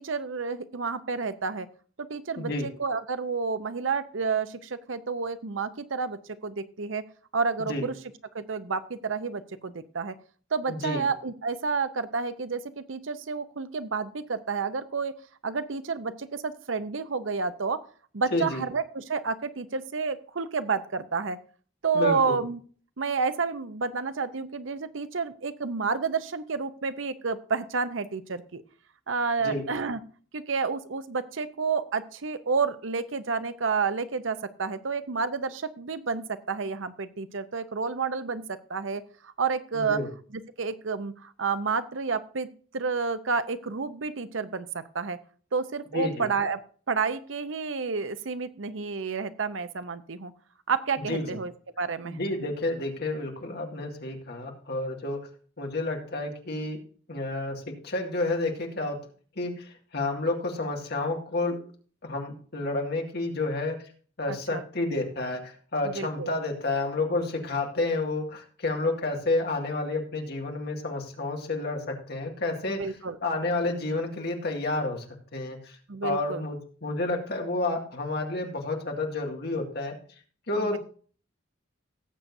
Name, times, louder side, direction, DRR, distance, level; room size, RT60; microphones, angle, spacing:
voice 1, 0.0-1.7 2.0-7.0 7.3-7.9 8.3-10.1 10.5-15.1 15.4-17.8 18.1-21.4 21.8-22.6 23.0-28.6 29.1-30.0 30.3-40.0 40.3-42.5 42.7-45.2 45.5-46.6 46.9-50.3 50.7-51.5 51.8-52.2 64.3-64.6 65.8-66.3 72.7-73.2 75.9-76.4 80.6-80.8, right 5 dB, 70° right, 12 dB, 0.8 m, -30 dB
voice 2, 2.4-2.7 7.7-7.9 10.7-11.1 18.3-18.6 21.9-22.4 29.4-29.6 39.7-40.1 45.9-46.3 51.1-51.4 52.0-55.2 55.6-56.8 57.1-59.0 59.4-61.6 62.0-63.8 64.2-72.9 73.2-75.0 75.3-75.8 76.0-79.9 80.5-80.8, left 2 dB, 55° left, 2 dB, 2.2 m, -30 dB
17.5 x 7.9 x 2.7 m, 0.43 s
head